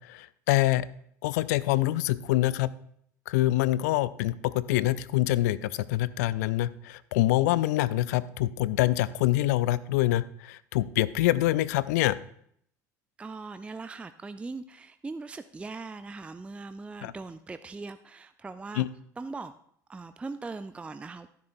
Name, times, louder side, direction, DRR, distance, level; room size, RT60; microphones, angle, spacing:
voice 1, 0.1-0.9 1.2-2.7 3.3-12.2 17.0-17.1 18.8-18.9, left 16 dB, 65° left, 18 dB, 0.4 m, -25 dB
voice 2, 13.2-18.9 19.2-19.5 19.9-21.3, right 3 dB, 10° right, 11 dB, 0.4 m, -40 dB
12.0 x 10.5 x 2.6 m, 0.67 s
figure-of-eight pair, 70°, 10 cm